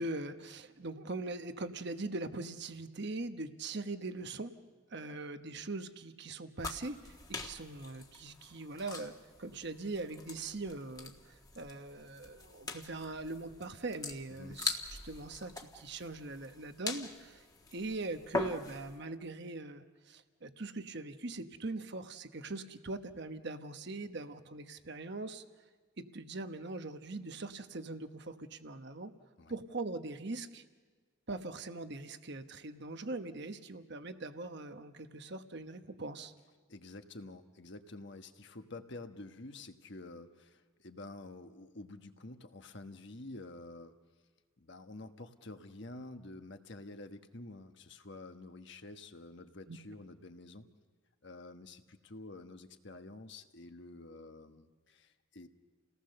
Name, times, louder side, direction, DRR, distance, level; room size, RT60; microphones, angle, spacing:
voice 1, 0.0-4.5 4.9-9.1 9.4-14.7 15.0-17.4 17.7-25.4 26.0-29.1 29.5-30.6 31.3-36.3 49.7-49.8, right 2 dB, 55° right, 8 dB, 1.1 m, -41 dB
sound 1, 6.6-19.0, left 2 dB, 15° left, 1.4 m, -43 dB
voice 2, 14.3-14.6 29.4-29.5 36.7-44.0 44.6-50.7 51.2-55.5, left 2 dB, 55° left, 7 dB, 1.2 m, -49 dB
30.0 x 18.5 x 6.7 m, 1.5 s
head